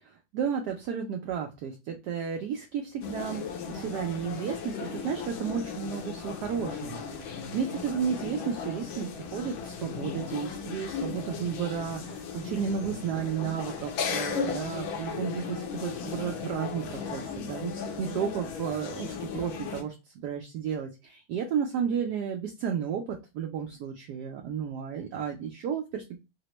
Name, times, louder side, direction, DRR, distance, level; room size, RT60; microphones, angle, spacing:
voice 1, 0.0-26.2, right 7 dB, 75° right, 2 dB, 0.9 m, -33 dB
sound 1, 3.0-19.8, left 6 dB, 85° left, 1.5 m, -36 dB
4.1 x 2.1 x 2.9 m, 0.27 s
omnidirectional pair, 2.2 m